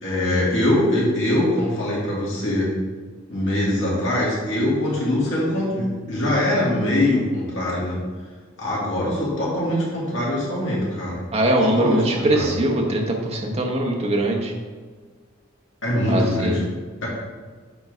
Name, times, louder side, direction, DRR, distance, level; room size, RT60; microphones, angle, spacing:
voice 1, 0.0-2.8 3.3-8.0 8.6-11.2 11.6-12.5 15.8-16.6 17.0-17.1, left 1 dB, 60° left, -6 dB, 2.0 m, -23 dB
voice 2, 11.3-14.5 16.1-16.7, right 1 dB, 30° right, 0 dB, 0.9 m, -21 dB
7.0 x 3.7 x 5.0 m, 1.5 s
head